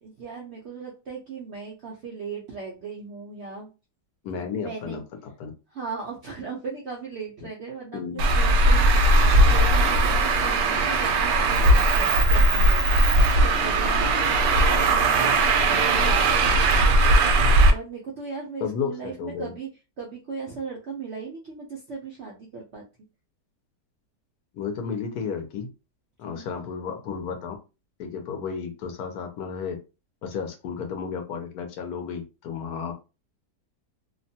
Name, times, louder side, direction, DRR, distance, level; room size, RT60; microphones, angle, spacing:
voice 1, 0.0-3.7 4.5-5.0 5.7-12.9 13.4-14.1 14.7-16.8 17.7-19.7 20.0-22.8 26.3-26.6, right 5 dB, 65° right, -2 dB, 0.6 m, -38 dB
voice 2, 4.2-5.0 5.4-5.5 7.9-8.2 18.6-19.5 24.5-25.7 26.2-27.6 28.0-29.8 30.2-32.9, left 6 dB, 70° left, 5 dB, 1.1 m, -32 dB
Traffic noise roadway noise, 8.2-17.7, right 2 dB, 85° right, 1.2 m, -19 dB
2.9 x 2.2 x 2.7 m, 0.30 s
omnidirectional pair, 1.8 m